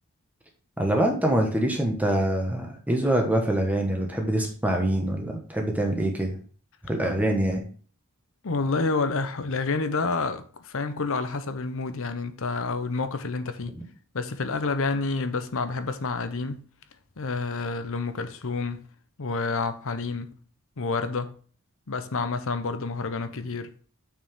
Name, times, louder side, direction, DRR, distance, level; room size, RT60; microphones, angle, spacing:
voice 1, 0.8-6.4 6.8-7.6, right 1 dB, 5° right, 1.3 m, -25 dB
voice 2, 8.4-13.8 14.1-16.6 17.2-18.9 19.2-20.4 20.8-21.4 21.9-23.7, left 3 dB, 65° left, 0.8 m, -29 dB
6.7 x 6.1 x 3.6 m
head